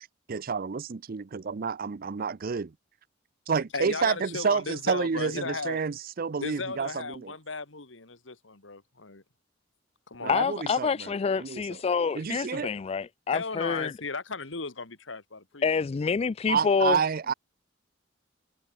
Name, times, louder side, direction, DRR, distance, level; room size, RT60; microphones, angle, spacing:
voice 1, 0.3-2.7 3.5-7.3 10.2-11.1 11.4-11.8 12.1-12.7 16.5-17.3, right 5 dB, 50° right, 0.5 m, -29 dB
voice 2, 3.7-5.8 6.4-9.2 10.1-10.4 13.3-15.7, left 4 dB, 75° left, 2.3 m, -36 dB
voice 3, 10.3-13.9 15.6-17.0, left 5 dB, 30° left, 0.3 m, -27 dB
head